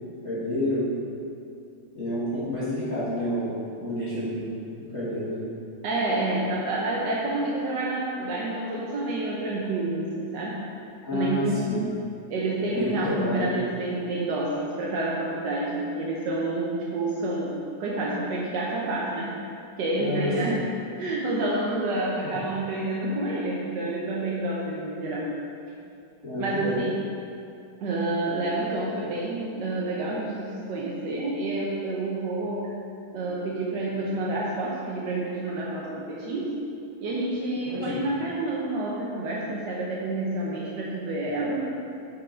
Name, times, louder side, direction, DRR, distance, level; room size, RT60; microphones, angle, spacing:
voice 1, 0.2-0.9 2.0-3.5 3.8-4.5 4.9-5.4 11.0-11.9 12.6-13.6 20.0-20.6 22.2-22.4 26.2-26.7 37.6-38.0, left 1 dB, 35° left, -12 dB, 1.7 m, -29 dB
voice 2, 5.8-10.6 11.1-11.8 12.3-17.5 17.8-19.3 19.8-20.6 21.0-25.2 26.4-27.0 27.8-32.7 33.1-36.5 37.0-41.6, right 2 dB, 65° right, -5 dB, 1.4 m, -28 dB
12.0 x 4.6 x 3.7 m, 2.6 s
omnidirectional pair, 2.2 m